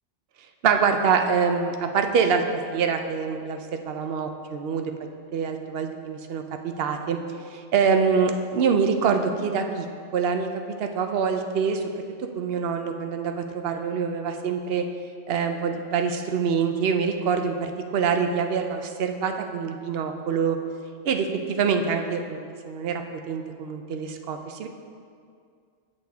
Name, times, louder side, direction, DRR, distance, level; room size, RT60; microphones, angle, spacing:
voice 1, 0.6-4.8 5.3-7.2 7.5-9.9 10.1-10.5 10.8-14.8 15.3-20.6 21.0-24.7, right 6 dB, 60° right, 6 dB, 0.7 m, -25 dB
7.6 x 6.6 x 3.4 m, 2.2 s
omnidirectional pair, 1.3 m